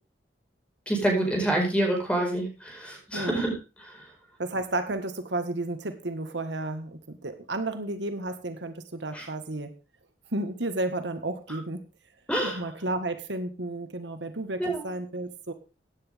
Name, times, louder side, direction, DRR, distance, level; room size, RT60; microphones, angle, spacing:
voice 1, 0.9-3.5 3.9-4.0 9.1-9.2 12.3-12.6 14.6-14.8, right 1 dB, 5° left, 1 dB, 5.0 m, -27 dB
voice 2, 4.4-9.7 10.3-11.8 12.4-15.5, right 2 dB, 90° right, 8 dB, 1.7 m, -32 dB
16.0 x 9.6 x 3.6 m, 0.32 s
head